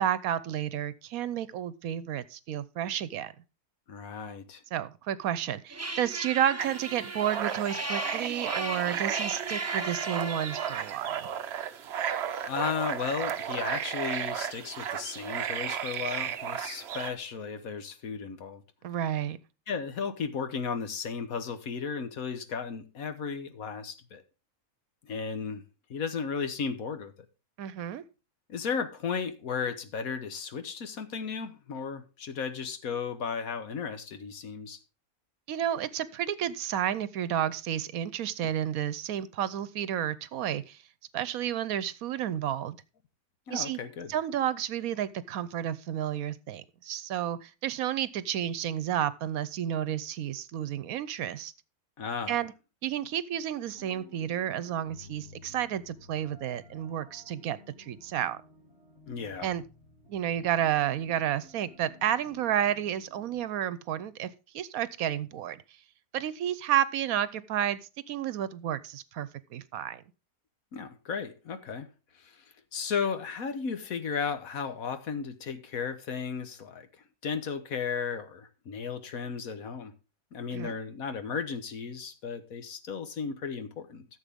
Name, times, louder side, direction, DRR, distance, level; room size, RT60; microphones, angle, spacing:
voice 1, 0.0-3.3 4.7-11.3 18.8-19.4 27.6-28.0 35.5-40.8 41.1-42.8 43.5-43.8 44.1-51.5 52.3-52.5 52.8-58.4 59.4-59.6 60.1-65.6 66.1-67.8 68.1-70.0 80.5-80.7, right 10 dB, 75° right, 1.1 m, -31 dB
voice 2, 3.9-4.6 12.5-18.6 19.7-24.2 25.0-25.6 25.9-27.1 28.5-34.8 43.5-44.1 52.0-52.4 59.1-59.5 70.7-71.9 72.1-72.4 72.7-76.9 77.2-79.9 80.3-84.1, left 6 dB, 70° left, 1.5 m, -35 dB
sound 1, 5.7-10.9, right 2 dB, 15° right, 0.6 m, -36 dB
sound 2, 6.6-17.1, right 9 dB, 55° right, 0.8 m, -34 dB
sound 3, 53.6-63.4, left 1 dB, 45° left, 5.5 m, -55 dB
14.0 x 7.2 x 3.5 m
omnidirectional pair, 1.5 m